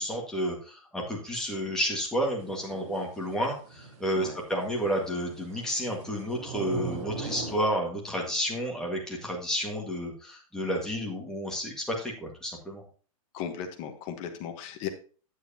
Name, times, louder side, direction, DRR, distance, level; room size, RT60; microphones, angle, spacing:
voice 1, 0.0-12.8, equal, 5° left, -2 dB, 1.8 m, -31 dB
sound 1, 2.4-7.6, right 3 dB, 55° right, 3.6 m, -40 dB
voice 2, 13.3-14.9, left 8 dB, 30° left, 6 dB, 1.2 m, -36 dB
9.4 x 8.0 x 2.8 m, 0.39 s
hypercardioid pair, 155°, 18 cm